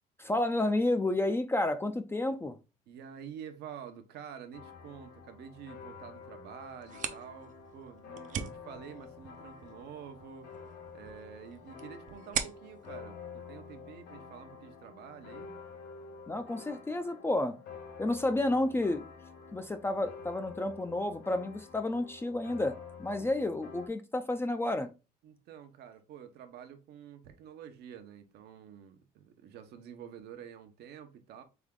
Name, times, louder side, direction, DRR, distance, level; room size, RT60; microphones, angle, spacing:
voice 1, 0.2-2.5 16.3-17.6 18.0-19.0 19.5-24.9, left 2 dB, 15° left, 0.4 m, -31 dB
voice 2, 2.9-10.5 10.9-15.5 23.2-23.3 25.2-31.4, right 8 dB, 75° right, 0.9 m, -48 dB
sound 1, 4.5-23.9, left 5 dB, 80° left, 1.0 m, -49 dB
sound 2, 6.7-14.2, right 8 dB, 50° right, 0.6 m, -42 dB
3.6 x 3.5 x 3.6 m
cardioid pair, 110°, 17 cm